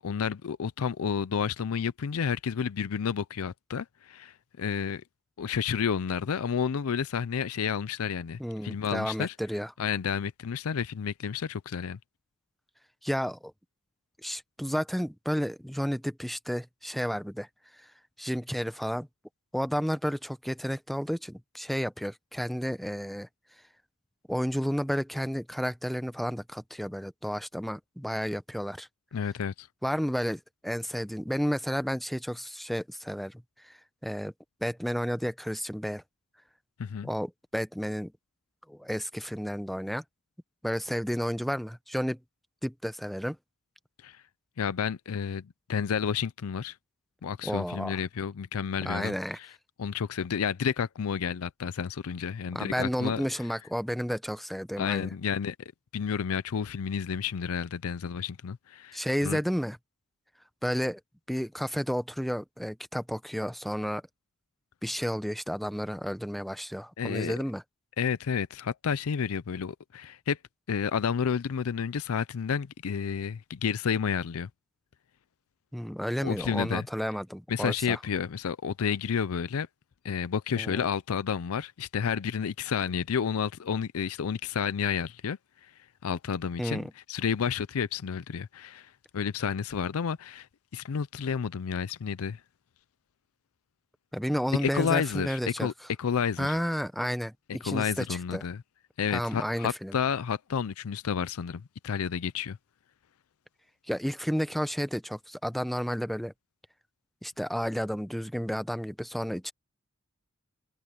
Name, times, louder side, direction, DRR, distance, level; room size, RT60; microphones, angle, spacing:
voice 1, 0.0-5.0 5.4-9.3 9.8-12.0 29.1-29.7 36.8-37.1 44.0-44.2 44.6-46.8 47.2-49.5 49.8-53.2 54.8-55.6 55.9-59.4 67.0-67.4 68.0-70.4 70.7-74.5 76.2-76.9 77.5-79.7 80.0-85.7 86.0-86.8 87.1-90.5 90.7-92.4 94.6-95.7 96.0-96.6 97.5-98.6 99.0-102.6, left 7 dB, 75° left, 0.5 m, -31 dB
voice 2, 8.4-9.7 13.0-13.5 14.2-17.5 17.8-17.9 18.2-19.1 19.5-23.3 24.3-28.9 29.8-33.7 34.0-34.3 34.6-36.0 37.0-38.1 38.7-40.0 40.6-42.2 42.6-43.4 47.4-48.0 48.8-49.4 52.5-55.1 58.9-59.8 60.6-61.0 61.3-64.0 64.8-67.6 75.7-78.0 80.6-80.8 86.6-86.9 94.1-95.7 96.4-98.4 99.1-100.0 103.9-106.3 107.2-109.5, equal, ahead, 0.8 m, -32 dB
head